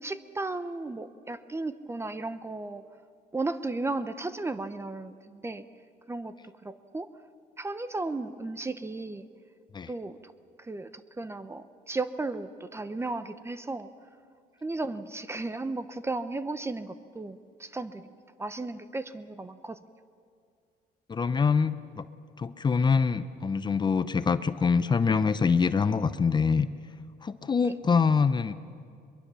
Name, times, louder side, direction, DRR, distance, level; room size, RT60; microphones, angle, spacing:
voice 1, 0.0-2.9 3.3-5.6 6.1-7.1 7.6-9.3 9.9-10.3 10.6-10.9 11.2-13.9 14.6-18.1 18.4-19.8 27.6-27.7, right 2 dB, 15° right, 12 dB, 0.8 m, -35 dB
voice 2, 21.1-22.1 22.4-26.7 27.2-28.5, left 5 dB, 25° left, 12 dB, 0.7 m, -25 dB
22.5 x 22.5 x 7.0 m, 2.3 s
cardioid pair, 110°, 17 cm